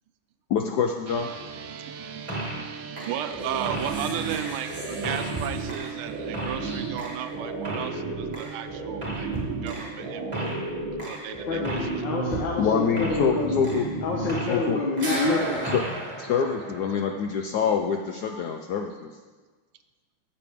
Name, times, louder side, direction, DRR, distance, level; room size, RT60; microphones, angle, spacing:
voice 1, 0.5-1.3 12.6-13.8 14.5-14.8 15.7-15.8 16.2-19.1, left 7 dB, 90° left, 3 dB, 0.8 m, -25 dB
sound 1, 1.1-10.5, right 8 dB, 75° right, 1.4 m, -41 dB
voice 2, 1.7-9.3 9.6-10.5 11.0-11.8 18.3-18.4, right 10 dB, 90° right, 9 dB, 1.5 m, -35 dB
sound 2, 2.3-2.7 3.0-14.7 15.0-17.2, right 2 dB, 15° right, 1.8 m, -32 dB
voice 3, 11.5-13.7 14.0-15.6, left 3 dB, 60° left, -3 dB, 1.7 m, -27 dB
13.0 x 7.7 x 3.5 m, 1.4 s
omnidirectional pair, 2.4 m